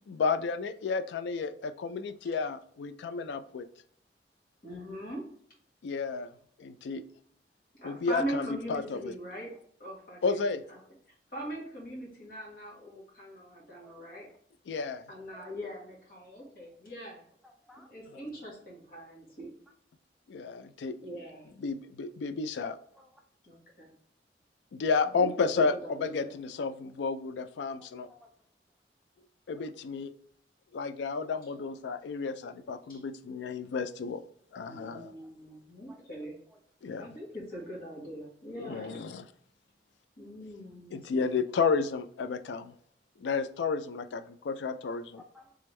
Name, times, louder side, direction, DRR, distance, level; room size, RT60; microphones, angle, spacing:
voice 1, 0.1-3.6 5.8-6.3 6.6-7.0 7.8-9.1 10.2-10.6 14.7-15.1 20.3-20.9 21.6-22.8 24.7-28.1 29.5-30.1 30.7-34.2 34.5-35.1 36.8-37.1 38.6-39.2 40.9-42.7 43.2-45.2, left 4 dB, 80° left, 11 dB, 0.3 m, -32 dB
voice 2, 4.6-5.3 7.7-9.5 9.8-10.8 11.3-14.3 15.1-17.3 17.9-19.5 21.0-21.5 23.4-23.9 25.0-25.3 25.5-26.3 32.9-33.0 34.7-36.4 37.0-39.0 40.2-41.2, equal, 55° left, -3 dB, 1.5 m, -41 dB
voice 3, 17.4-17.9 22.9-23.2 27.8-28.4 29.5-29.8 35.5-35.6 35.9-36.0 36.5-36.6 37.5-37.7 45.2-45.6, equal, ahead, 0 dB, 0.3 m, -57 dB
3.4 x 3.4 x 3.1 m, 0.64 s
head